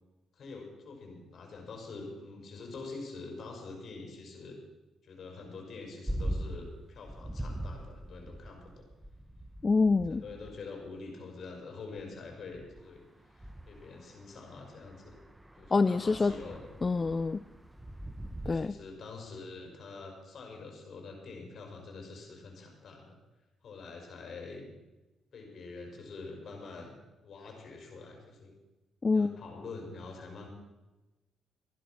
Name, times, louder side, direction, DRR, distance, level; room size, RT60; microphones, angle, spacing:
voice 1, 0.4-4.6 5.0-8.9 10.1-13.0 13.3-15.2 15.5-16.7 18.4-23.2 23.6-24.7 25.3-27.0 27.2-28.5 29.1-30.5, left 3 dB, 55° left, 2 dB, 5.1 m, -45 dB
sound 1, 6.1-11.0 12.0-12.1 12.6-18.5, right 1 dB, 10° right, 0.9 m, -41 dB
voice 2, 9.6-10.2 15.7-16.3 16.8-17.4 18.5-18.8 29.0-29.3, left 4 dB, 30° left, 14 dB, 0.4 m, -26 dB
14.5 x 11.0 x 6.0 m, 1.1 s
cardioid pair, 90°, 0 cm